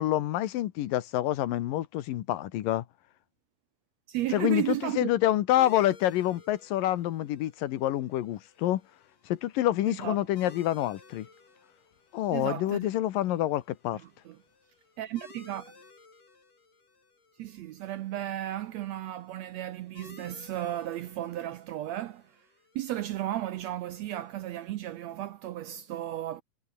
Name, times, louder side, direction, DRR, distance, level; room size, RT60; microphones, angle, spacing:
voice 1, 0.0-2.8 4.3-8.8 9.3-11.3 12.1-14.0, left 13 dB, 90° left, 2.9 m, -27 dB
voice 2, 4.1-5.1 9.9-10.2 12.3-12.9 14.2-14.4 15.0-15.7 17.4-22.4 22.7-26.4, right 13 dB, 80° right, 1.6 m, -34 dB
sound 1, 5.6-24.7, left 4 dB, 70° left, 8.8 m, -57 dB
omnidirectional pair, 3.8 m